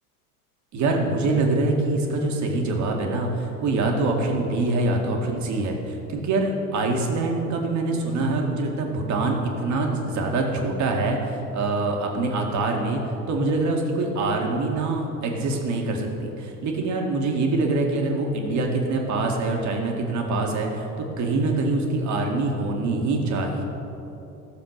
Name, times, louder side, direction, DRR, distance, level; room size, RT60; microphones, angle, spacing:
voice 1, 0.7-13.0 13.3-23.6, right 2 dB, 40° right, 1 dB, 2.1 m, -24 dB
15.5 x 7.2 x 6.6 m, 3.0 s
figure-of-eight pair, 70°, 44 cm